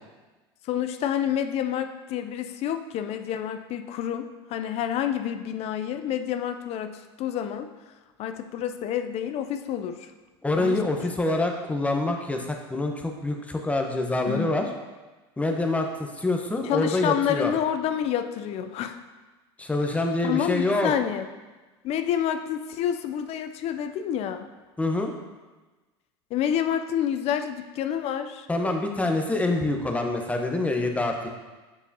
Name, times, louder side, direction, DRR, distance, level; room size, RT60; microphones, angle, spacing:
voice 1, 0.6-7.7 8.2-10.1 10.6-10.8 11.2-11.5 14.3-14.5 16.6-19.0 20.2-21.3 21.8-24.5 26.3-28.5, left 9 dB, 50° left, 8 dB, 0.5 m, -28 dB
voice 2, 10.4-14.7 15.4-17.5 19.6-20.9 24.8-25.1 28.5-31.3, left 2 dB, 10° left, 3 dB, 0.9 m, -26 dB
7.0 x 6.8 x 2.8 m, 1.2 s
hypercardioid pair, 90°, 14 cm